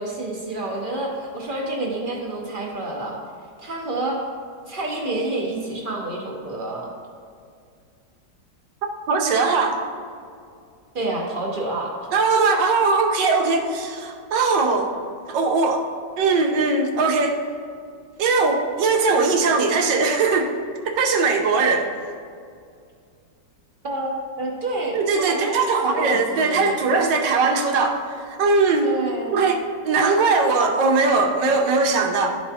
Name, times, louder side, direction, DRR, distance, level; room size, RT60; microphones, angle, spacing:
voice 1, 0.0-3.2 3.6-4.2 4.7-6.9 10.9-12.5 19.1-19.2 23.8-25.0 25.3-26.8 28.8-29.4, right 2 dB, 50° right, -1 dB, 0.6 m, -28 dB
voice 2, 9.1-9.8 12.1-14.9 15.3-15.9 16.2-17.4 18.2-20.5 20.8-21.9 24.9-28.9 29.3-32.4, right 4 dB, 80° right, 3 dB, 1.4 m, -20 dB
11.5 x 4.6 x 2.7 m, 2.3 s
omnidirectional pair, 1.9 m